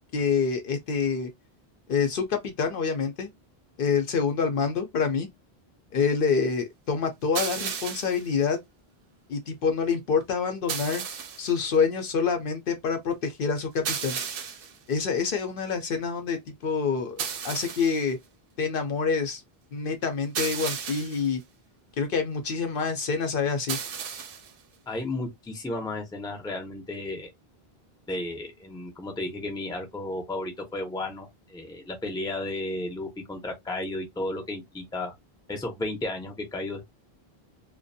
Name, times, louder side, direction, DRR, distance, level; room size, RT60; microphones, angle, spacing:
voice 1, 0.1-1.3 1.9-3.3 3.8-5.3 5.9-8.6 9.3-11.0 11.4-14.2 14.9-17.2 17.4-18.2 18.6-19.4 19.7-21.4 22.0-23.8, left 5 dB, 65° left, 0.7 m, -26 dB
sound 1, 7.3-8.3 10.7-11.5 13.8-14.8 17.2-18.0 20.3-21.3 23.7-24.5, right 7 dB, 65° right, 0.8 m, -33 dB
voice 2, 24.9-27.3 28.1-35.1 35.5-36.9, left 2 dB, 5° left, 0.5 m, -33 dB
2.5 x 2.2 x 2.6 m
omnidirectional pair, 1.0 m